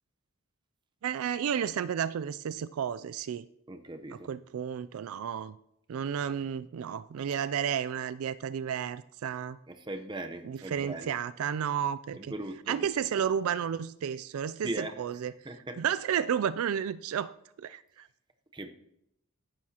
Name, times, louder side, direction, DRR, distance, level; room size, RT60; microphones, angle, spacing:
voice 1, 1.0-3.5 4.1-5.6 5.9-9.6 10.4-12.3 12.7-15.3 15.7-18.1, right 8 dB, 70° right, 0.3 m, -32 dB
voice 2, 3.7-4.3 9.7-11.1 12.1-12.9 14.6-14.9 15.4-15.8 18.5-18.7, right 2 dB, 20° right, 0.8 m, -39 dB
14.5 x 11.0 x 2.9 m
head